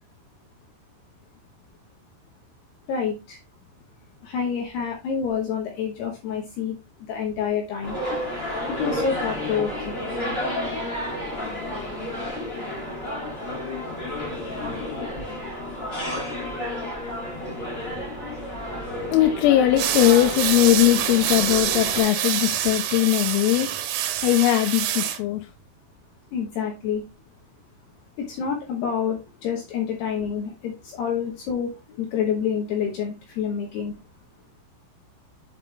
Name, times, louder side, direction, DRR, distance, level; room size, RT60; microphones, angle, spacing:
voice 1, 2.9-3.4 4.2-6.8 7.1-8.0 8.7-10.0 26.3-27.0 28.2-33.9, left 7 dB, 70° left, 2.6 m, -28 dB
sound 1, 7.8-22.0, left 1 dB, 25° left, 1.2 m, -31 dB
voice 2, 19.1-23.7 24.2-25.5, left 15 dB, 90° left, 3.5 m, -20 dB
sound 2, 19.8-25.2, right 11 dB, 80° right, 3.3 m, -26 dB
7.8 x 5.3 x 3.2 m
omnidirectional pair, 5.9 m